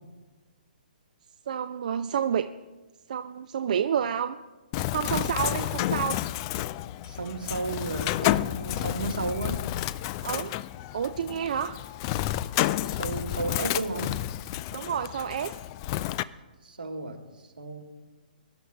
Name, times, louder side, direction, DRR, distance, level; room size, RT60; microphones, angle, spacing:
voice 1, 1.5-2.5 3.1-4.4 4.9-6.2 10.2-10.5 10.9-11.8 14.7-15.5, right 8 dB, 55° right, 9 dB, 0.5 m, -29 dB
Bird, 4.7-16.2, left 14 dB, 30° left, 0.3 m, -30 dB
voice 2, 7.0-9.6 12.8-14.1 16.6-17.8, right 3 dB, 80° right, 3 dB, 2.0 m, -33 dB
23.5 x 11.5 x 2.3 m, 1.2 s
figure-of-eight pair, 125°, 5 cm